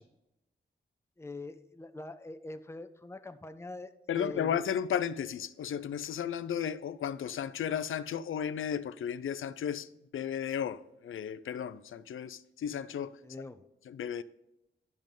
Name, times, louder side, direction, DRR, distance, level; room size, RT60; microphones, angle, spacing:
voice 1, 1.2-3.9 4.2-4.6 13.2-13.7, left 2 dB, 15° left, 0.7 m, -43 dB
voice 2, 4.1-13.2 13.8-14.2, left 8 dB, 90° left, 0.4 m, -34 dB
12.0 x 5.2 x 3.7 m
cardioid pair, 60°, 20 cm